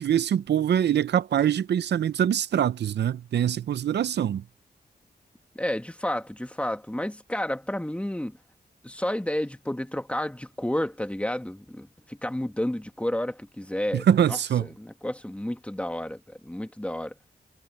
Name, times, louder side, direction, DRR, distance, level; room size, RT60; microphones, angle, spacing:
voice 1, 0.0-4.4 13.9-14.7, right 9 dB, 75° right, 0.6 m, -24 dB
voice 2, 5.6-8.4 8.8-17.1, left 1 dB, 5° left, 2.1 m, -31 dB
cardioid pair, 60°, 18 cm